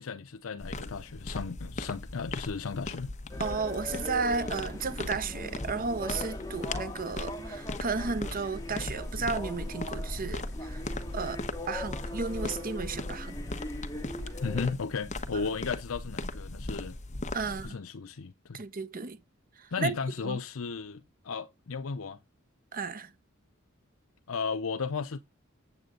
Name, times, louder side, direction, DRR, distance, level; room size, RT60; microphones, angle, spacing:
voice 1, 0.0-3.1 14.4-17.0 17.4-18.6 19.7-22.2 24.3-25.2, left 5 dB, 75° left, 0.6 m, -35 dB
sound 1, 0.6-17.7, left 2 dB, 35° left, 1.0 m, -38 dB
sound 2, 3.3-14.7, left 1 dB, 20° left, 1.8 m, -41 dB
voice 2, 3.4-10.8 11.1-13.4 17.3-17.8 18.5-19.2 19.6-19.9 20.2-20.4 22.7-23.1, right 4 dB, 45° right, 0.9 m, -33 dB
8.2 x 7.8 x 3.8 m
head